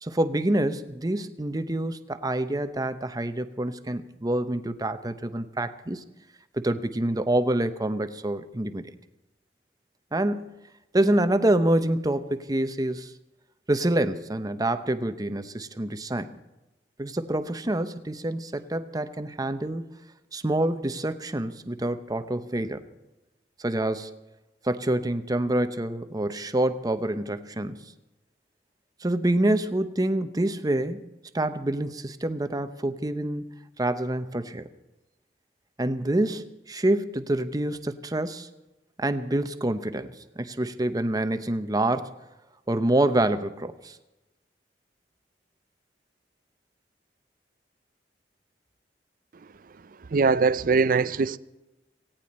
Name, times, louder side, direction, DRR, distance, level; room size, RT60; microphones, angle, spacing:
voice 1, 0.0-6.0 6.5-8.8 10.1-10.5 10.9-13.1 13.7-16.3 17.0-19.8 20.3-22.8 23.6-24.1 24.6-27.8 29.0-31.1 31.3-34.7 35.8-38.5 39.0-42.1 42.7-44.0, right 1 dB, 20° right, 0.8 m, -27 dB
voice 2, 50.1-51.4, right 4 dB, 50° right, 0.5 m, -21 dB
18.0 x 16.5 x 4.3 m
head